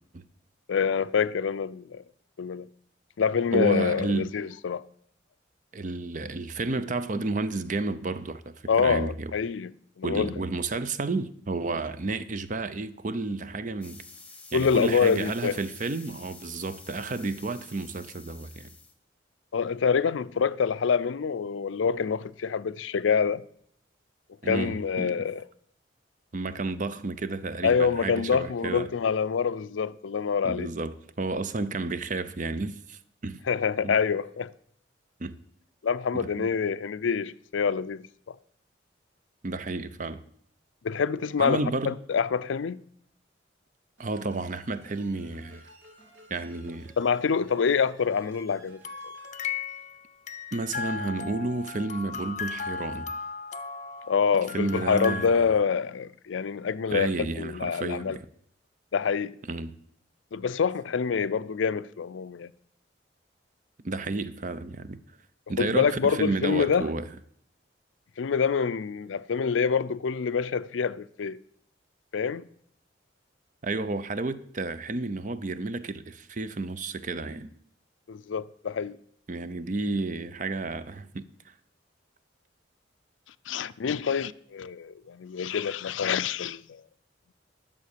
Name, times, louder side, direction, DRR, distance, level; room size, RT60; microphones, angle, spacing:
voice 1, 0.7-2.0 2.4-2.7 3.2-4.8 8.7-9.7 10.0-10.3 14.5-15.6 19.5-23.4 24.4-25.4 27.6-30.7 33.5-34.5 35.8-38.4 40.8-42.8 47.0-48.8 54.1-57.1 57.4-58.2 58.9-59.4 60.3-62.5 65.6-66.8 68.2-71.4 72.1-72.5 78.1-79.0 83.5-86.8, left 6 dB, 85° left, 0.4 m, -26 dB
voice 2, 3.5-4.3 5.7-9.3 10.0-14.0 14.5-18.7 24.4-25.3 26.3-28.9 30.4-33.4 33.8-34.0 35.2-35.4 36.1-36.5 39.4-40.2 41.4-42.0 44.0-45.7 46.3-46.9 50.5-53.1 54.5-55.5 56.9-58.3 59.4-59.7 63.8-65.0 65.5-67.1 73.6-77.5 79.3-81.5, right 3 dB, 40° right, 0.6 m, -31 dB
sound 1, 13.8-18.9, left 4 dB, 5° left, 1.1 m, -49 dB
sound 2, 44.0-49.3, right 2 dB, 75° right, 2.4 m, -54 dB
sound 3, 48.8-55.3, left 5 dB, 40° left, 0.6 m, -36 dB
11.0 x 7.0 x 6.7 m
head